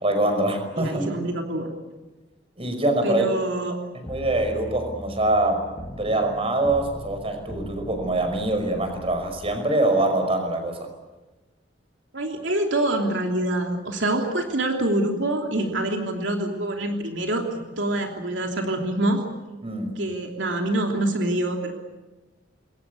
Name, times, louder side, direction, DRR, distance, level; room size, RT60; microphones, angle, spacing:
voice 1, 0.0-1.1 2.6-3.2 3.9-5.6 6.0-10.9 19.6-20.0, right 2 dB, 30° right, 6 dB, 5.5 m, -24 dB
voice 2, 0.8-1.7 3.0-3.8 12.1-19.2 20.0-21.7, right 1 dB, 75° right, 2 dB, 3.1 m, -25 dB
sound 1, 4.1-9.6, equal, 25° left, 2.0 m, -40 dB
27.5 x 22.0 x 8.3 m, 1.1 s
head